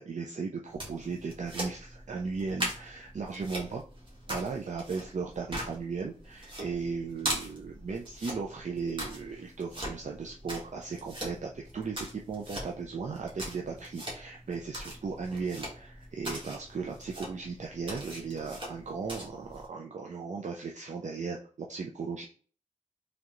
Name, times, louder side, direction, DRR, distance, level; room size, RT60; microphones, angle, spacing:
voice 1, 0.0-3.8 4.3-22.2, right 5 dB, 65° right, 0 dB, 0.5 m, -36 dB
sound 1, 0.7-19.7, equal, 40° right, 1.6 m, -41 dB
3.6 x 3.3 x 3.0 m, 0.42 s
wide cardioid pair, 70°, 13 cm